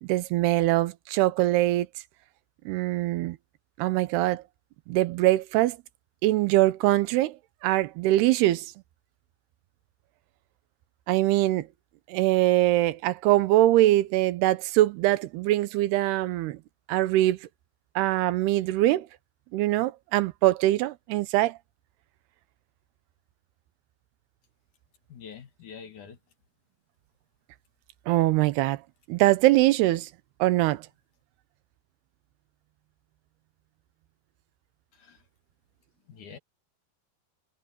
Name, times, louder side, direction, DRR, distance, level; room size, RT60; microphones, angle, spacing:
voice 1, 0.0-1.9 2.7-3.4 3.8-4.4 4.9-5.8 6.2-7.4 7.6-8.7 11.1-11.7 12.1-16.6 16.9-17.4 18.0-19.1 19.5-21.6 28.1-28.8 29.1-30.1 30.4-30.8, right 16 dB, 80° right, 2.8 m, -23 dB
voice 2, 25.1-26.2 34.9-35.2 36.1-36.4, left 7 dB, 55° left, 3.0 m, -45 dB
omnidirectional pair, 4.7 m